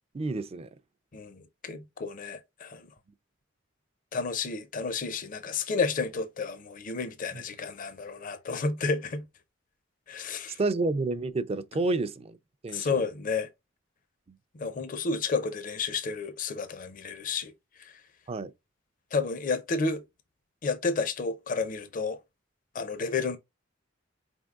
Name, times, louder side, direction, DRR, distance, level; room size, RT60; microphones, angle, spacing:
voice 1, 0.1-0.7 7.3-7.4 10.6-12.4 12.6-12.9 14.3-14.4 18.3-18.5, right 3 dB, 30° right, 0.4 m, -29 dB
voice 2, 1.1-2.9 4.1-9.3 10.1-10.6 12.7-13.5 14.5-17.5 17.8-18.0 19.1-20.0 20.6-22.2 22.7-23.4, left 4 dB, 45° left, 0.5 m, -31 dB
4.3 x 3.6 x 2.3 m
head